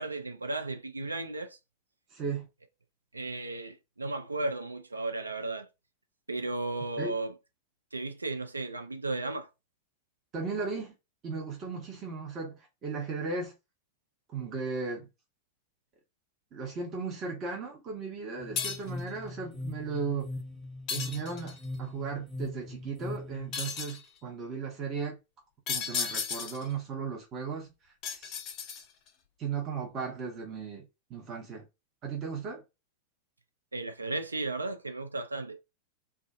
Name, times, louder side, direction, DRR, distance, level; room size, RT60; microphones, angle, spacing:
voice 1, 0.0-1.6 3.1-5.7 6.3-7.3 7.9-9.5 33.7-35.6, right 2 dB, 80° right, 0.3 m, -34 dB
voice 2, 2.1-2.5 7.0-7.1 10.3-10.9 11.2-13.5 14.3-15.1 16.5-20.3 20.9-25.2 25.7-28.4 29.4-30.8 31.1-31.7 32.0-32.6, right 5 dB, 30° right, 0.8 m, -36 dB
sound 1, 18.4-23.6, left 2 dB, ahead, 0.9 m, -41 dB
sound 2, 18.6-19.0 20.9-21.6 23.5-24.1 25.7-26.7 28.0-29.1, left 6 dB, 35° left, 0.5 m, -34 dB
2.4 x 2.3 x 2.4 m
figure-of-eight pair, 90°, 0 cm